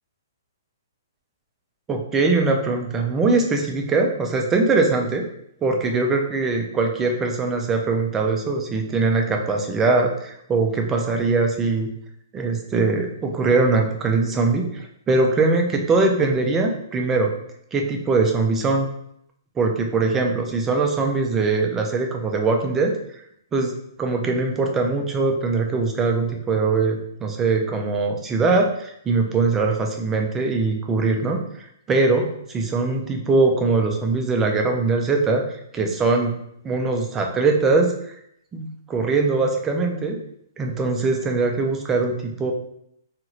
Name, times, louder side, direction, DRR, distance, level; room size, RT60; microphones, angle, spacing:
voice 1, 1.9-5.3 5.6-11.9 12.3-17.3 17.7-18.9 19.6-22.9 23.5-23.7 24.0-31.4 31.9-35.4 35.7-36.3 36.6-37.9 38.5-40.2 40.6-42.5, right 3 dB, 15° right, 3 dB, 0.3 m, -21 dB
2.6 x 2.4 x 2.9 m, 0.73 s
hypercardioid pair, 150°, 2 cm